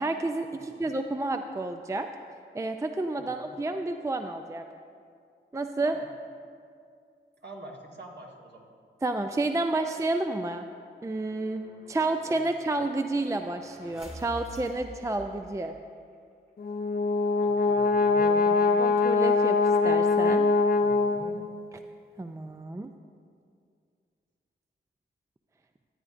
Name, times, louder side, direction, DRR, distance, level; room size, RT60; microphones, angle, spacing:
voice 1, 0.0-2.1 2.5-4.7 5.5-6.0 9.0-10.7 11.0-15.8 18.8-19.6 19.8-20.5 22.2-22.9, right 2 dB, 15° right, 6 dB, 0.4 m, -30 dB
voice 2, 0.5-0.9 3.2-3.6 5.8-6.1 7.4-8.7 12.3-12.5 17.4-18.8 20.8-21.4, right 1 dB, 55° right, -1 dB, 1.6 m, -45 dB
sound 1, 9.2-15.9, equal, 30° right, 1.8 m, -49 dB
Brass instrument, 16.6-21.6, left 4 dB, 45° left, 0.5 m, -23 dB
14.0 x 9.6 x 2.5 m, 2.3 s
cardioid pair, 40°, 21 cm